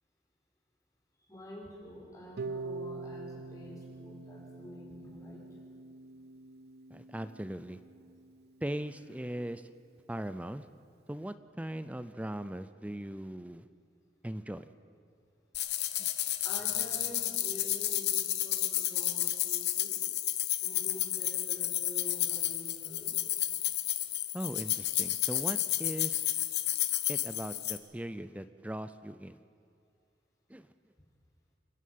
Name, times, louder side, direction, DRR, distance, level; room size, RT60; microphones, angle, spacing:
voice 1, 1.3-5.5 16.4-20.0 20.6-23.2, equal, 20° left, -3 dB, 5.6 m, -47 dB
Harp, 2.4-8.4, right 3 dB, 60° right, 0.4 m, -44 dB
voice 2, 6.9-7.8 8.6-9.7 10.1-10.6 11.1-13.7 14.2-14.7 16.0-16.1 24.3-26.4 27.1-29.4 30.5-30.7, right 1 dB, 10° right, 12 dB, 0.5 m, -39 dB
sound 1, 15.5-27.8, left 13 dB, 70° left, 1.0 m, -31 dB
27.5 x 11.0 x 8.7 m, 2.5 s
head